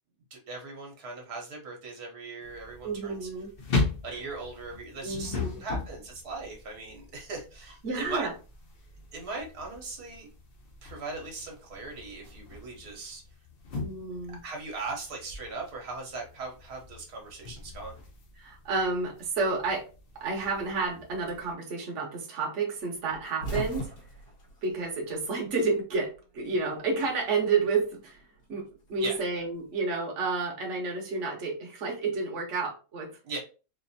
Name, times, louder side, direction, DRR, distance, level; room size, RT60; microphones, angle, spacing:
voice 1, 0.3-3.3 4.0-5.3 5.6-8.3 9.1-10.3 10.8-13.2 14.4-18.0 29.0-29.2 33.2-33.4, right 3 dB, 75° right, 0 dB, 1.5 m, -39 dB
sound 1, 2.4-21.5, left 3 dB, 50° left, 0.7 m, -39 dB
voice 2, 2.8-3.5 5.0-5.6 7.8-8.3 13.7-14.4 18.4-19.9 20.2-23.9 24.6-28.2 28.5-33.1, right 4 dB, 55° right, -1 dB, 1.2 m, -30 dB
sound 2, 23.1-25.6 25.9-27.0 28.2-29.6, equal, 85° left, 1.9 m, -39 dB
4.1 x 2.6 x 2.7 m, 0.33 s
omnidirectional pair, 1.7 m